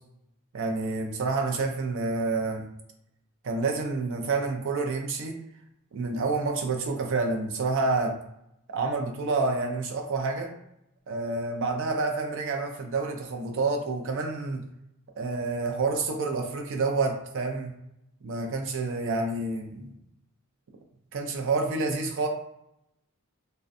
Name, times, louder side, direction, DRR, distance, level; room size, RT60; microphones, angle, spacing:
voice 1, 0.5-2.7 3.4-5.4 5.9-8.2 8.7-10.5 11.1-14.6 15.2-17.7 18.2-19.9 21.1-22.3, right 3 dB, 60° right, 3 dB, 0.4 m, -28 dB
2.4 x 2.2 x 2.5 m, 0.80 s
head